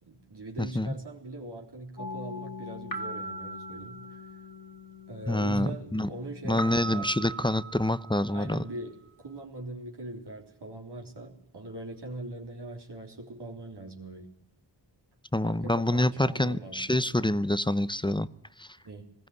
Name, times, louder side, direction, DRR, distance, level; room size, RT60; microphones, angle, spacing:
voice 1, 0.0-4.2 5.1-7.1 8.3-8.9 9.2-14.3 15.4-16.8 18.8-19.1, right 2 dB, 65° right, 0 dB, 3.8 m, -41 dB
voice 2, 0.6-0.9 5.3-6.1 6.4-8.7 15.3-18.3 18.6-18.8, left 1 dB, 10° left, 16 dB, 0.8 m, -27 dB
sound 1, 2.0-8.5, right 1 dB, 50° left, 2.8 m, -40 dB
20.0 x 15.0 x 9.6 m, 0.81 s
cardioid pair, 50°, 43 cm